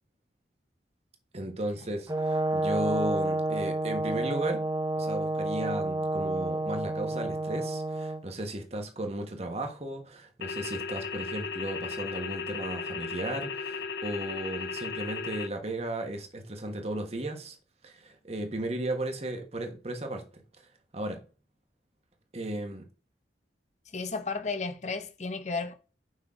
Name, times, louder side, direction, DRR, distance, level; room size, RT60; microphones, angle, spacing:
voice 1, 1.3-4.7 5.0-17.6 17.8-20.7 20.9-21.2 22.3-22.8, right 1 dB, 35° right, 1.5 m, -35 dB
Brass instrument, 2.1-8.2, right 2 dB, 20° right, 0.7 m, -30 dB
sound 1, 10.4-15.5, left 5 dB, 65° left, 0.5 m, -36 dB
voice 2, 23.9-25.7, left 4 dB, 40° left, 0.9 m, -33 dB
6.5 x 5.7 x 3.7 m
head